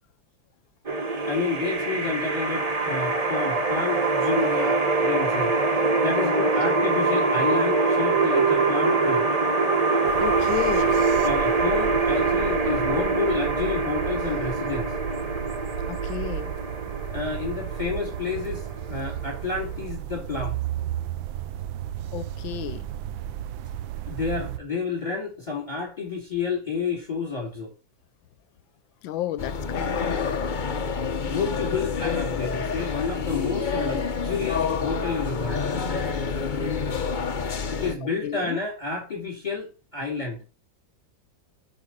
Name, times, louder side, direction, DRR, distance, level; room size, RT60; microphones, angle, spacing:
sound 1, 0.9-19.8, right 3 dB, 35° right, 0.6 m, -24 dB
voice 1, 1.3-5.7 6.0-9.2 11.2-14.9 17.1-20.6 24.1-27.7 31.2-35.7 37.7-40.4, left 4 dB, 20° left, 2.5 m, -30 dB
voice 2, 6.4-6.8 10.2-10.9 15.9-16.5 22.1-22.9 29.0-29.9 38.2-38.6, left 13 dB, 80° left, 1.3 m, -32 dB
sound 2, 10.1-24.6, right 11 dB, 90° right, 1.4 m, -34 dB
sound 3, 29.4-37.9, left 5 dB, 55° left, 0.5 m, -28 dB
9.6 x 5.4 x 4.0 m
omnidirectional pair, 2.1 m